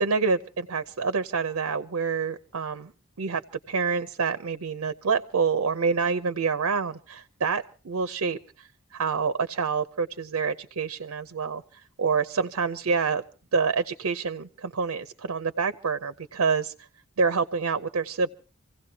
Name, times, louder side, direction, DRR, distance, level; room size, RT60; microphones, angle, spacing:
voice 1, 0.0-2.9 3.2-3.4 3.7-8.7 8.9-11.6 12.0-13.2 13.5-16.7 17.2-18.3, right 5 dB, 80° right, 10 dB, 0.7 m, -27 dB
27.0 x 16.5 x 2.8 m, 0.36 s
head